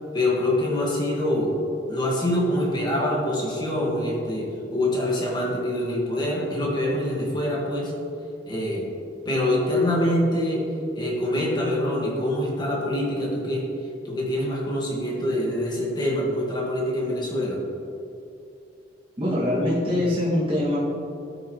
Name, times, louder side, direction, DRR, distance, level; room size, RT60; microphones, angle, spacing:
voice 1, 0.1-1.5 1.9-7.9 8.5-8.9 9.2-10.6 10.9-13.6 14.0-17.6, left 1 dB, 25° left, -3 dB, 1.7 m, -25 dB
voice 2, 19.2-20.8, left 1 dB, 30° right, -9 dB, 2.0 m, -23 dB
12.5 x 6.4 x 3.1 m, 2.6 s
head